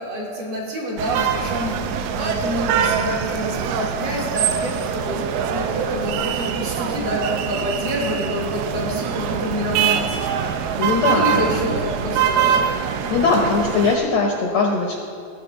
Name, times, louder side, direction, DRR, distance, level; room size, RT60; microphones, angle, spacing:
voice 1, 0.0-1.9 2.2-10.4 11.1-12.7, equal, 55° right, -3 dB, 2.0 m, -27 dB
sound 1, 1.0-14.0, right 8 dB, 85° right, 2.2 m, -24 dB
voice 2, 10.8-11.6 12.9-15.0, left 4 dB, 75° left, 0 dB, 1.6 m, -20 dB
17.5 x 7.1 x 3.0 m, 2.4 s
omnidirectional pair, 3.9 m